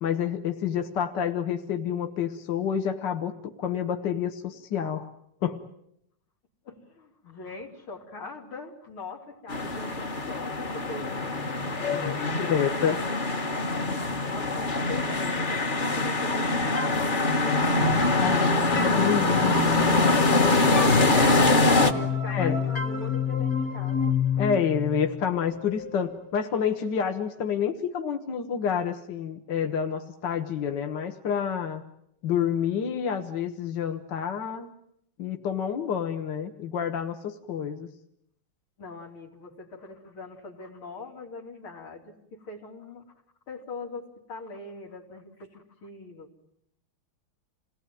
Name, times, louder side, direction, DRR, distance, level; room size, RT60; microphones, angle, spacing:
voice 1, 0.0-5.1 5.4-5.6 11.8-13.1 18.2-18.4 18.8-19.6 22.3-22.6 24.4-31.8 32.2-34.7 35.2-37.9, left 8 dB, 60° left, 6 dB, 1.9 m, -28 dB
voice 2, 6.6-11.3 11.8-12.7 14.3-17.5 17.7-19.9 21.9-24.4 38.8-43.0 43.5-46.3, left 3 dB, 90° left, 1 dB, 4.2 m, -42 dB
sound 1, 9.5-21.9, left 2 dB, 30° left, 1.2 m, -24 dB
sound 2, 16.8-26.3, left 6 dB, 45° left, 2.0 m, -30 dB
27.5 x 18.5 x 9.2 m, 0.75 s
omnidirectional pair, 2.2 m